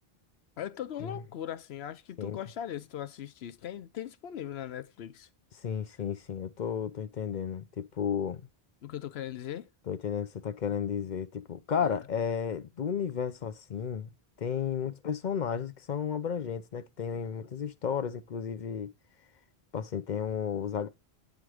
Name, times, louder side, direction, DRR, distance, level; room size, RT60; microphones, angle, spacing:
voice 1, 0.6-5.3 8.8-9.7 11.8-12.0, left 10 dB, 85° left, 0.9 m, -39 dB
voice 2, 5.6-8.5 9.9-14.1 14.4-18.9 19.7-20.9, left 7 dB, 50° left, 0.8 m, -33 dB
9.2 x 3.7 x 4.9 m
omnidirectional pair, 1.0 m